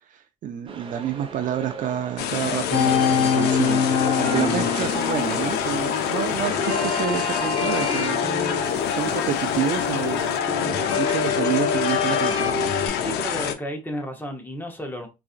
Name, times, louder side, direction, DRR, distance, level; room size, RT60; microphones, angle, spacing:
voice 1, 0.1-3.9 4.2-8.2 8.9-12.5, right 9 dB, 50° right, 0.5 m, -29 dB
sound 1, 0.7-11.6 12.0-12.1, right 5 dB, 30° right, 0.8 m, -39 dB
sound 2, 2.2-13.6, left 8 dB, 80° left, 0.5 m, -26 dB
sound 3, 2.7-12.9, left 6 dB, 35° left, 1.9 m, -26 dB
voice 2, 13.0-15.1, equal, 10° left, 0.8 m, -32 dB
4.1 x 2.4 x 2.4 m
cardioid pair, 110°, 17 cm